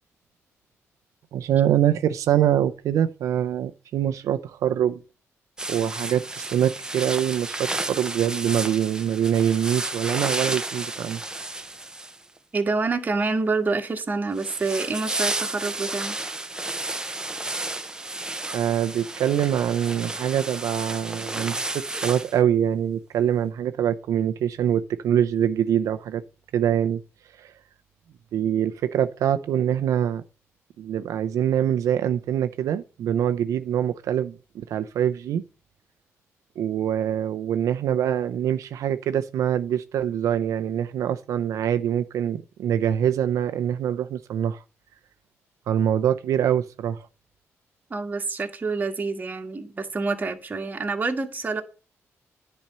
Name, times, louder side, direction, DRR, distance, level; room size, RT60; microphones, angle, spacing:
voice 1, 1.3-5.0 5.7-11.2 18.5-26.2 26.5-27.0 27.4-27.5 28.3-30.2 30.8-35.4 36.6-44.6 45.7-47.1, right 10 dB, 85° right, 0.6 m, -24 dB
sound 1, 5.6-12.4 14.4-22.4, right 2 dB, 15° right, 0.8 m, -32 dB
voice 2, 12.5-16.2 47.9-51.6, right 3 dB, 30° right, 1.7 m, -27 dB
10.5 x 4.4 x 6.7 m
cardioid pair, 100°, 5 cm